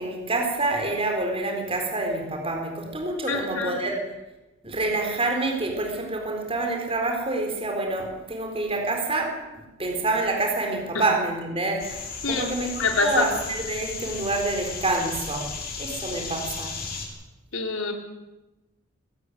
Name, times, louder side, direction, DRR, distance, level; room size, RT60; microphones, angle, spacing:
voice 1, 0.0-4.0 4.6-15.5 15.8-16.8, right 2 dB, 30° right, 2 dB, 4.2 m, -27 dB
voice 2, 3.3-3.8 10.9-11.0 12.2-12.5 12.8-13.3 17.5-17.9, left 4 dB, 80° left, 3 dB, 3.9 m, -25 dB
sound 1, 11.8-17.1, left 5 dB, 45° left, 5.6 m, -35 dB
24.5 x 13.0 x 9.4 m, 1.0 s
head